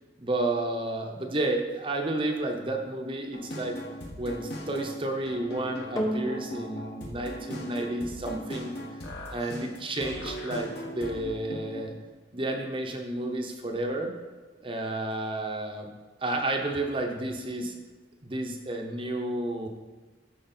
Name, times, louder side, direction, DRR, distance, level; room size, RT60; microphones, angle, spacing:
voice 1, 0.2-3.8 4.2-8.7 9.3-11.9 12.3-14.1 14.6-15.9 16.2-17.8 18.2-19.7, right 2 dB, 30° right, 2 dB, 0.9 m, -31 dB
sound 1, 3.3-11.8, equal, 55° left, 1.6 m, -39 dB
sound 2, 6.0-14.5 15.2-15.3, equal, 20° left, 1.1 m, -40 dB
13.5 x 4.8 x 4.4 m, 1.3 s
head